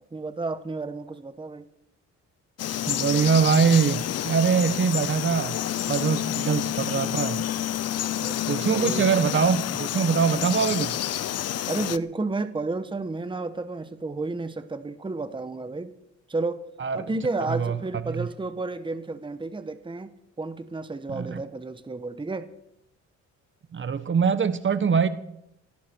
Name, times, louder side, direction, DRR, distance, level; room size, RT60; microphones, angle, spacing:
voice 1, 0.1-1.6 8.2-9.1 11.7-15.9 16.3-16.6 16.9-22.5, right 3 dB, 15° right, 11 dB, 1.2 m, -32 dB
Frog, 2.6-12.0, left 12 dB, 55° left, 0.7 m, -29 dB
voice 2, 2.9-5.6 5.9-7.5 8.5-11.0 16.8-17.1 17.5-17.8 18.1-18.3 21.1-21.4 23.7-25.1, right 6 dB, 40° right, 12 dB, 1.2 m, -23 dB
18.0 x 16.5 x 4.6 m, 0.81 s
cardioid pair, 90°, 30 cm